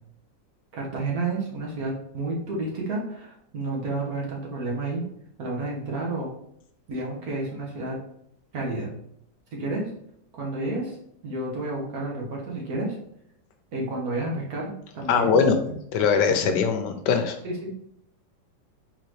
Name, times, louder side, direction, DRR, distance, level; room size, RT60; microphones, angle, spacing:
voice 1, 0.7-5.0 5.4-6.3 6.9-8.0 8.5-8.9 9.5-9.9 10.3-11.0 11.2-13.0 13.7-15.4 17.4-17.7, right 2 dB, 60° right, -2 dB, 1.4 m, -30 dB
voice 2, 15.1-17.4, left 6 dB, 75° left, 7 dB, 1.2 m, -22 dB
4.0 x 3.9 x 3.1 m, 0.70 s
omnidirectional pair, 2.0 m